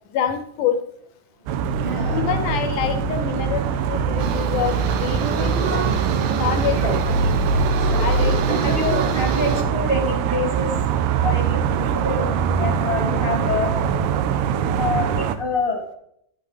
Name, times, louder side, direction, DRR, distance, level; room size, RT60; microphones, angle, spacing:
voice 1, 0.1-0.8 2.1-6.0 6.4-7.2 8.0-8.8, left 8 dB, 75° left, 8 dB, 2.0 m, -26 dB
sound 1, 1.5-15.4, right 6 dB, 85° right, 2.3 m, -22 dB
voice 2, 1.8-2.5 7.9-10.7 11.2-13.7 14.8-15.8, left 2 dB, 25° right, -1 dB, 1.1 m, -26 dB
sound 2, 4.2-9.6, right 7 dB, 70° right, 1.8 m, -28 dB
11.5 x 10.5 x 3.3 m, 0.73 s
omnidirectional pair, 4.0 m